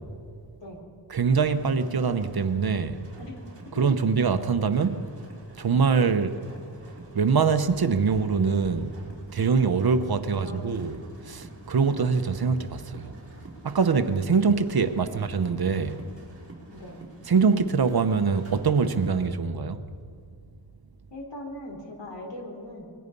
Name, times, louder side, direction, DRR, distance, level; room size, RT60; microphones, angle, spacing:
voice 1, 1.1-3.0 3.8-5.0 5.6-6.4 7.1-8.9 9.3-10.9 11.3-13.1 13.6-16.0 17.3-19.8, right 5 dB, 55° right, 1.0 m, -23 dB
sound 1, 1.3-19.3, right 2 dB, 30° right, 5.7 m, -47 dB
voice 2, 10.4-10.7 15.0-15.1 16.7-17.0 21.1-22.8, left 1 dB, 70° left, 4.4 m, -40 dB
27.0 x 22.0 x 5.4 m
wide cardioid pair, 155°, 44 cm